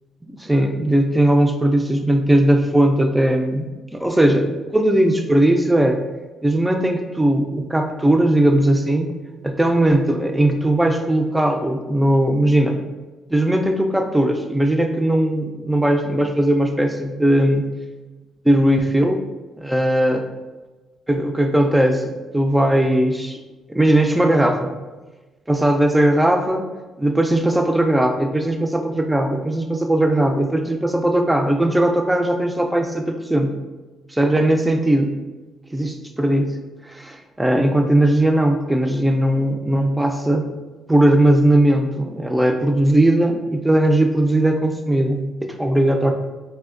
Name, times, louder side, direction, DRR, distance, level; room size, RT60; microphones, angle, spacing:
voice 1, 0.2-6.0 6.4-9.1 9.4-12.8 13.3-17.7 18.4-19.2 19.6-20.2 21.1-23.4 23.7-24.7 25.5-26.7 27.0-33.5 34.1-35.1 35.7-36.6 36.8-40.5 40.9-46.1, right 1 dB, 10° right, 4 dB, 0.4 m, -18 dB
4.2 x 2.2 x 2.4 m, 1.2 s
cardioid pair, 110°, 0 cm